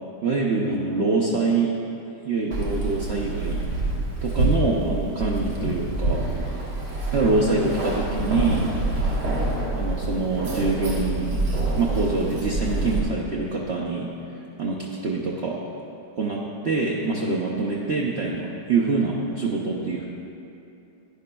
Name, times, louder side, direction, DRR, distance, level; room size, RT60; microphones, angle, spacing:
voice 1, 0.2-1.7 2.2-3.6 4.2-6.2 7.1-8.7 9.7-11.4 11.8-14.1 14.6-15.6 16.2-20.1, right 3 dB, 55° right, -3 dB, 0.7 m, -25 dB
Keys jangling, 2.5-13.0, right 2 dB, 80° right, 2.1 m, -26 dB
11.5 x 9.6 x 2.2 m, 2.8 s
omnidirectional pair, 1.8 m